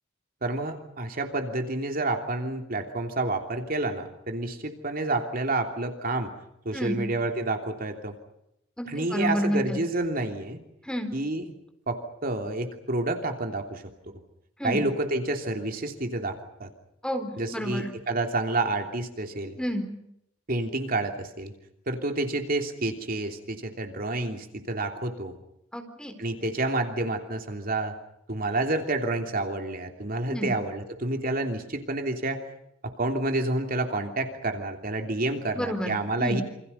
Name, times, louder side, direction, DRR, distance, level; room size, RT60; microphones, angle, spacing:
voice 1, 0.4-6.3 6.6-8.1 8.9-10.6 11.1-11.5 11.9-13.8 14.6-16.7 17.4-19.6 20.5-21.5 21.9-25.3 26.2-28.0 28.3-32.4 32.8-36.4, right 2 dB, 50° right, 4 dB, 3.1 m, -29 dB
voice 2, 6.7-7.0 8.8-9.8 10.8-11.1 14.6-14.8 17.0-17.9 19.6-19.9 25.7-26.2 30.3-30.5 35.5-36.4, equal, 5° left, 6 dB, 4.2 m, -30 dB
28.0 x 27.0 x 5.5 m, 0.80 s
head